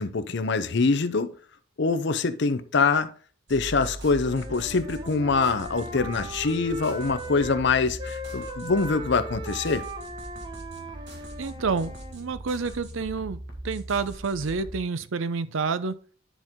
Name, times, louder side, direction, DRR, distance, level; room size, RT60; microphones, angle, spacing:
voice 1, 0.0-1.3 1.8-3.1 3.5-9.8, left 4 dB, 55° left, 0.6 m, -24 dB
sound 1, 3.5-14.8, right 1 dB, 55° right, 1.6 m, -40 dB
Wind instrument woodwind instrument, 4.2-7.7 8.0-12.2, right 1 dB, 20° right, 0.9 m, -39 dB
voice 2, 11.4-13.4 13.6-16.0, right 4 dB, 70° right, 0.5 m, -29 dB
10.0 x 4.5 x 3.6 m
head